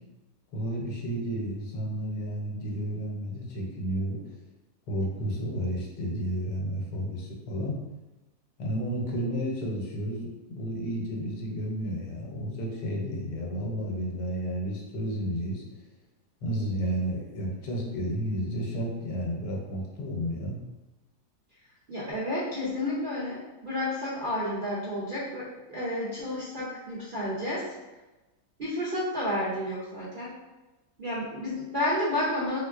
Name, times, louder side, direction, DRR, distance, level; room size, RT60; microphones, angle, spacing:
voice 1, 0.5-4.4 4.9-7.8 8.6-15.6 16.4-20.6, equal, 80° left, -1 dB, 1.3 m, -32 dB
voice 2, 21.9-27.7 28.6-30.3 31.0-32.6, left 1 dB, 70° right, -9 dB, 0.4 m, -31 dB
3.5 x 2.8 x 2.3 m, 1.1 s
omnidirectional pair, 1.8 m